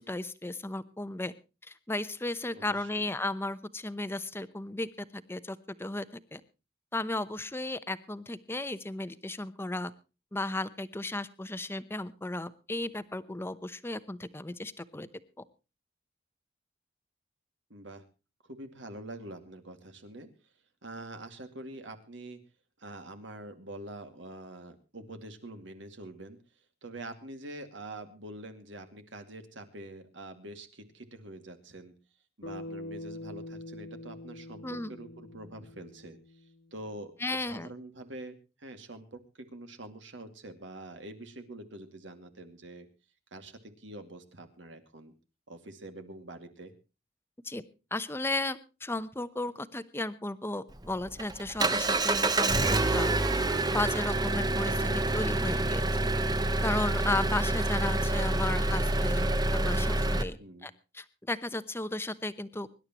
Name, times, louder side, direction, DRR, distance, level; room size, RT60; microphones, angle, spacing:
voice 1, 0.1-1.3 1.7-6.1 6.3-6.4 6.9-9.9 10.3-15.1 34.6-34.9 37.2-37.7 47.4-47.6 47.9-53.1 53.7-55.8 56.6-62.7, left 2 dB, 15° left, 14 dB, 0.9 m, -35 dB
voice 2, 2.5-3.1 17.7-18.0 18.4-20.3 20.8-22.4 22.8-26.4 26.8-31.9 32.4-36.2 36.7-42.9 43.3-45.1 45.5-46.7 60.4-60.7, right 1 dB, 75° right, 7 dB, 2.4 m, -45 dB
Bass guitar, 32.4-36.8, left 1 dB, 90° left, 2.0 m, -44 dB
Engine, 50.7-60.2, right 2 dB, 20° right, 0.9 m, -27 dB
24.5 x 11.5 x 3.0 m, 0.31 s
head